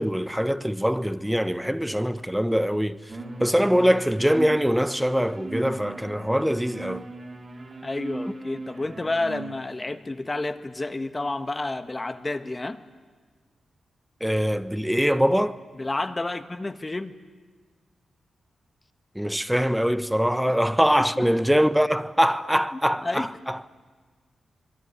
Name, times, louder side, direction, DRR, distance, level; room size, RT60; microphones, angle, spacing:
voice 1, 0.0-3.0 3.4-7.0 14.2-15.6 19.2-23.3, equal, 5° right, 1.1 m, -23 dB
sound 1, 3.1-9.5, right 2 dB, 45° right, 3.9 m, -38 dB
voice 2, 7.8-12.8 15.7-17.1 20.5-21.3 22.7-23.4, left 2 dB, 25° left, 1.5 m, -30 dB
26.5 x 22.5 x 9.6 m
cardioid pair, 75°, 0 cm